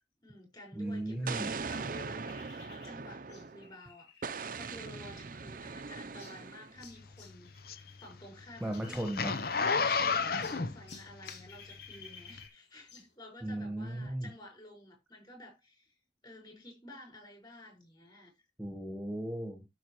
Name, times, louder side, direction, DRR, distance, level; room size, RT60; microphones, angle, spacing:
voice 1, 0.2-9.2 9.5-16.0 16.2-18.3, left 1 dB, 25° left, 5.4 m, -52 dB
voice 2, 0.7-1.5 8.6-9.4 13.4-14.3 18.6-19.7, right 1 dB, 5° right, 1.4 m, -36 dB
sound 1, 1.3-8.1 8.4-10.0 10.4-13.1, left 5 dB, 70° left, 3.4 m, -55 dB
Explosion, 1.3-3.7 4.2-6.8, right 4 dB, 50° right, 0.7 m, -40 dB
Zipper (clothing), 6.8-11.8 12.3-12.4, left 5 dB, 55° left, 0.8 m, -32 dB
13.0 x 6.2 x 3.1 m
head